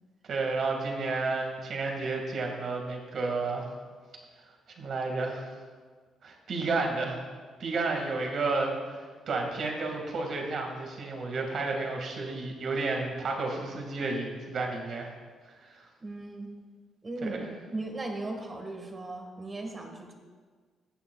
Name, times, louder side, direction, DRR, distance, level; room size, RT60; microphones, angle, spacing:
voice 1, 0.3-3.7 4.8-5.5 6.2-7.2 7.6-15.1 15.7-15.8 17.2-17.5, right 3 dB, 60° right, 1 dB, 2.1 m, -31 dB
voice 2, 16.0-16.5 17.0-17.4 17.7-20.1, right 2 dB, 30° right, 3 dB, 1.6 m, -37 dB
15.0 x 8.7 x 2.4 m, 1.6 s
cardioid pair, 90°, 0 cm